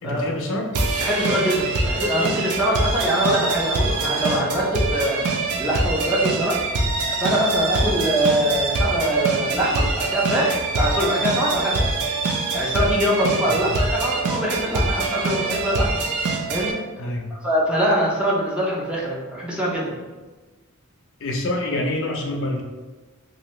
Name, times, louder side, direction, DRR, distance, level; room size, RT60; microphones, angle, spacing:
voice 1, 0.0-0.7 13.4-13.7 17.0-17.3 21.2-22.6, left 1 dB, 60° left, 1 dB, 0.5 m, -26 dB
sound 1, 0.7-16.7, right 3 dB, 75° right, 0.5 m, -24 dB
voice 2, 1.0-5.2 5.6-6.6 7.1-11.9 12.5-16.0 16.5-16.8 17.4-19.9, right 1 dB, 5° right, -5 dB, 0.5 m, -23 dB
2.7 x 2.6 x 3.1 m, 1.3 s
head